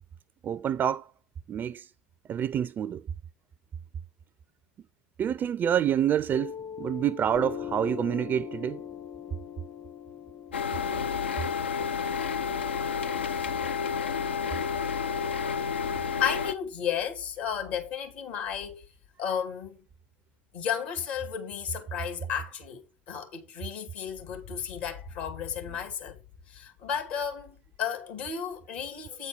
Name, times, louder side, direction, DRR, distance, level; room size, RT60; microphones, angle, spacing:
voice 1, 0.4-1.1 1.5-1.9 2.3-3.1 5.2-8.8 12.0-12.2, right 9 dB, 35° right, 0.4 m, -28 dB
Piano, 6.3-13.4, left 8 dB, 45° left, 1.3 m, -41 dB
sound 1, 10.5-16.5, left 6 dB, 90° left, 0.5 m, -30 dB
voice 2, 16.2-18.8 19.2-19.8 20.5-26.2 26.5-29.3, left 8 dB, 70° left, 2.2 m, -33 dB
8.3 x 4.3 x 5.0 m
hypercardioid pair, 80°, 6 cm